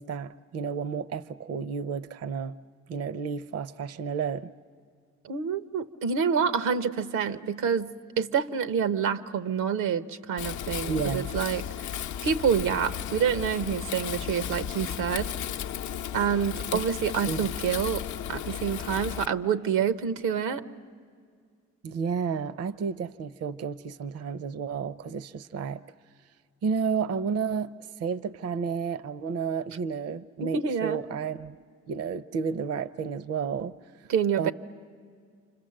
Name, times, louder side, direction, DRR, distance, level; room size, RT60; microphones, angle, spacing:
voice 1, 0.0-2.5 2.9-4.5 10.9-11.3 16.7-16.8 17.3-17.5 21.8-25.8 26.6-27.7 28.0-31.6 31.9-33.8 34.4-34.5, right 6 dB, 55° right, 16 dB, 0.6 m, -31 dB
voice 2, 5.2-11.6 12.2-15.3 16.1-20.6 30.4-31.0 34.1-34.5, right 7 dB, 90° right, 13 dB, 0.9 m, -27 dB
Wind, 10.4-19.3, left 9 dB, 75° left, 0.6 m, -34 dB
28.5 x 25.5 x 7.6 m, 2.1 s
cardioid pair, 90°, 30 cm